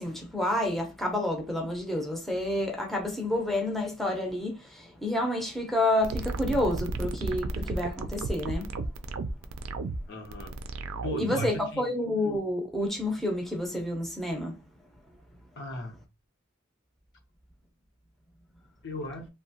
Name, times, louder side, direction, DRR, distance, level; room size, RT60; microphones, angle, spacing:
voice 1, 0.0-8.7 11.2-14.6, left 1 dB, ahead, 0.5 m, -29 dB
sound 1, 6.0-11.6, right 3 dB, 75° right, 0.4 m, -33 dB
voice 2, 10.1-10.5 11.0-11.9 15.6-16.0 18.8-19.3, left 1 dB, 60° left, 0.7 m, -37 dB
2.8 x 2.2 x 2.7 m
head